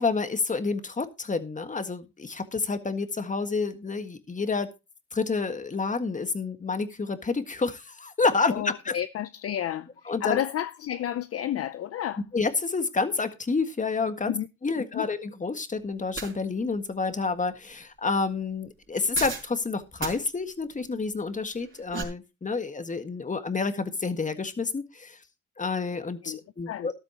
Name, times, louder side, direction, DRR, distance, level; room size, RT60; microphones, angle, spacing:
voice 1, 0.0-4.7 5.1-8.9 10.1-10.4 12.3-14.3 14.6-25.2 25.6-26.9, left 4 dB, 25° left, 1.7 m, -29 dB
voice 2, 8.5-12.2 14.3-14.5 14.9-15.1 26.2-26.4 26.7-26.9, left 11 dB, 50° left, 0.6 m, -31 dB
sound 1, 16.2-16.3 19.1-19.5 20.0-20.2 21.6-22.0, right 5 dB, 40° right, 4.8 m, -34 dB
13.0 x 12.0 x 2.9 m
cardioid pair, 90°, 30 cm